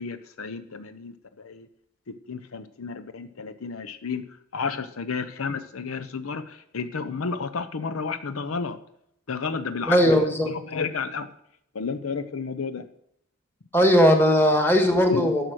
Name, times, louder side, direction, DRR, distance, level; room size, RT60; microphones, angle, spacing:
voice 1, 0.0-1.7 2.1-4.3 4.5-8.8 9.3-11.3 11.7-12.9 15.1-15.3, left 5 dB, 80° left, 12 dB, 0.7 m, -31 dB
voice 2, 9.9-10.5 13.7-15.5, equal, 10° left, 5 dB, 1.6 m, -19 dB
12.0 x 6.7 x 6.2 m, 0.76 s
head